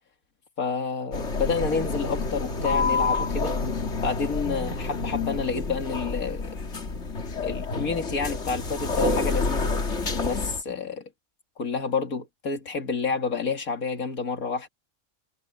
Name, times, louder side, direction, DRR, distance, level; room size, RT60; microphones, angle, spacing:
voice 1, 0.6-3.5 4.0-6.4 7.4-9.7 10.1-11.1 11.6-14.7, left 5 dB, 90° left, 2.7 m, -29 dB
sound 1, 1.1-10.6, left 3 dB, 55° left, 2.5 m, -28 dB
omnidirectional pair, 1.4 m